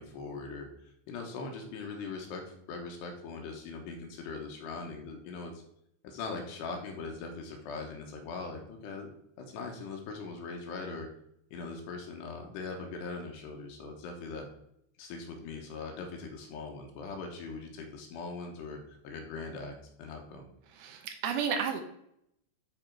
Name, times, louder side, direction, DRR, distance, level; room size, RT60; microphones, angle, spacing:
voice 1, 0.0-5.6 6.0-9.1 9.4-11.1 11.5-14.5 15.0-20.5, left 4 dB, 75° left, 2 dB, 3.0 m, -41 dB
voice 2, 20.7-21.8, right 7 dB, 80° right, 5 dB, 2.3 m, -32 dB
10.5 x 4.3 x 4.5 m, 0.77 s
omnidirectional pair, 5.3 m